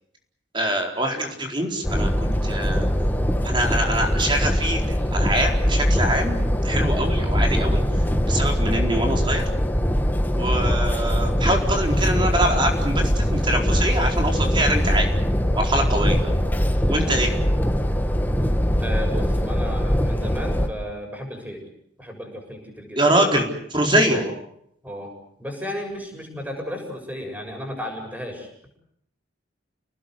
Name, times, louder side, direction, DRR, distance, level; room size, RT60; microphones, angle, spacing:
voice 1, 0.5-2.8 3.4-7.8 8.3-9.4 10.3-15.1 15.6-16.3 16.9-17.3 23.0-24.2, right 1 dB, 25° right, 2 dB, 4.4 m, -24 dB
sound 1, 1.8-20.7, equal, 10° left, 1.5 m, -22 dB
voice 2, 18.8-21.6 22.0-23.2 24.1-24.3 24.8-25.1 25.4-28.5, left 1 dB, 10° right, 2 dB, 7.2 m, -34 dB
30.0 x 19.0 x 8.0 m, 0.72 s
head